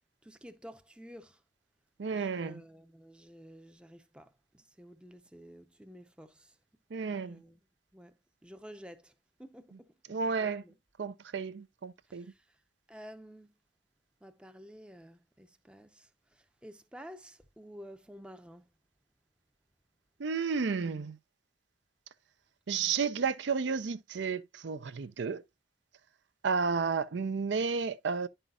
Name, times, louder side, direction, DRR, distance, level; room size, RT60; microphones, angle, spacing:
voice 1, 0.2-1.4 2.1-6.6 7.0-7.6 7.9-9.1 9.4-10.7 12.1-12.6 12.9-13.6 14.2-18.7, equal, 5° right, 0.6 m, -52 dB
voice 2, 2.0-2.5 6.9-7.4 10.1-10.6 11.0-12.3 20.2-21.2 22.7-25.4 26.4-28.3, right 5 dB, 65° right, 0.5 m, -32 dB
10.0 x 5.6 x 2.3 m
head